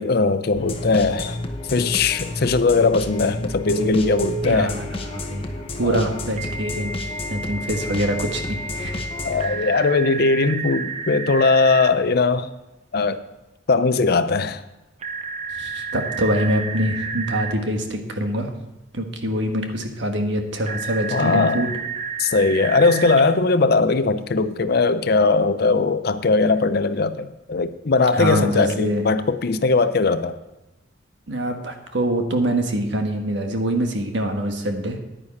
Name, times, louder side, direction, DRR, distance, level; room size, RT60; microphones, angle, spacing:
voice 1, 0.0-1.4 1.7-4.7 5.8-6.0 9.2-12.5 12.9-13.2 13.7-14.6 21.1-21.7 22.2-30.4, left 3 dB, 55° left, 0.6 m, -19 dB
sound 1, 0.5-9.5, left 2 dB, 30° left, 1.0 m, -31 dB
Telephone, 3.8-4.5 6.4-11.9 15.0-17.5 20.7-23.2, right 4 dB, 35° right, 0.7 m, -31 dB
voice 2, 4.4-5.5 5.8-9.0 9.5-9.7 15.5-18.5 18.9-21.7 28.1-29.0 31.3-35.0, right 1 dB, 75° right, 1.4 m, -25 dB
10.0 x 9.8 x 4.2 m
head